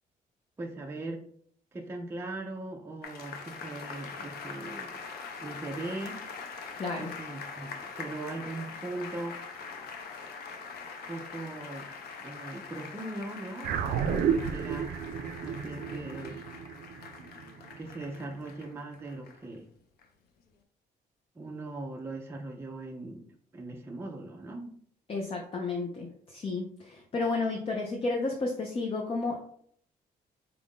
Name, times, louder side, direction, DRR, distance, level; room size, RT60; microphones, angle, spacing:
voice 1, 0.6-1.3 1.7-5.0 5.4-6.3 7.0-9.4 11.1-11.9 12.2-15.0 15.4-16.4 17.8-19.7 21.4-23.3 23.5-24.8, right 2 dB, 15° right, 0 dB, 0.5 m, -40 dB
sound 1, 3.0-19.5 20.0-20.1, left 5 dB, 85° left, 0.7 m, -43 dB
voice 2, 6.8-7.1 25.1-29.4, left 3 dB, 35° left, 1 dB, 0.6 m, -32 dB
sound 2, 13.6-18.3, right 7 dB, 80° right, 0.4 m, -32 dB
4.5 x 2.5 x 3.6 m, 0.62 s
cardioid pair, 130°, 16 cm